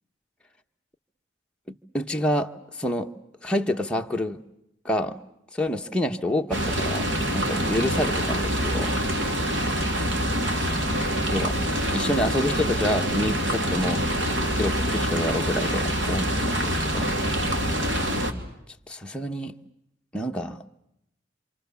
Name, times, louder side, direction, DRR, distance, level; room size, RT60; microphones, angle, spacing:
voice 1, 1.7-3.1 3.4-4.4 4.8-5.2 5.5-9.0 10.5-11.6 11.9-14.1 14.5-17.1 18.9-19.6 20.1-20.6, left 1 dB, 5° left, 2 dB, 1.0 m, -28 dB
sound 1, 6.5-18.3, equal, 75° right, 3.0 m, -25 dB
27.5 x 27.0 x 7.0 m, 0.81 s
head